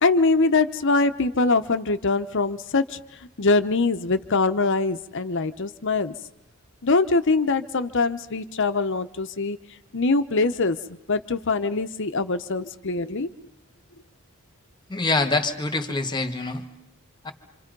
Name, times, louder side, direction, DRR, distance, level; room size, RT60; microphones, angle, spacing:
voice 1, 0.0-3.0 3.4-6.1 6.8-9.6 9.9-10.8 11.1-13.3, left 3 dB, 55° left, 11 dB, 0.9 m, -23 dB
voice 2, 14.9-16.6 17.2-17.3, left 3 dB, 20° left, 7 dB, 1.7 m, -25 dB
27.0 x 27.0 x 5.4 m, 0.84 s
head